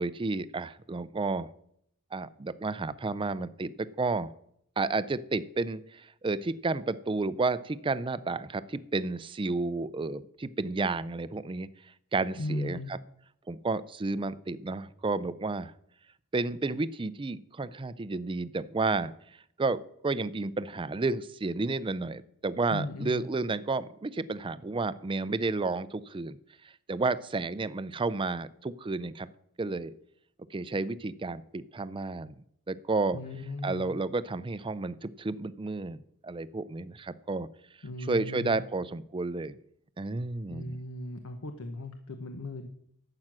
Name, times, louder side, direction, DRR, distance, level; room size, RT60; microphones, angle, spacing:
voice 1, 0.0-1.5 2.1-4.3 4.8-11.7 12.1-13.0 13.5-15.7 16.3-19.1 19.6-26.4 26.9-29.3 29.6-29.9 30.5-32.3 32.7-33.2 33.6-37.5 38.1-39.6 40.0-40.8, right 3 dB, 20° right, 16 dB, 0.4 m, -31 dB
voice 2, 12.4-12.9 22.7-23.3 33.1-33.9 37.8-38.6 40.5-42.7, left 1 dB, 70° left, 8 dB, 0.9 m, -37 dB
11.5 x 7.8 x 6.1 m, 0.71 s
head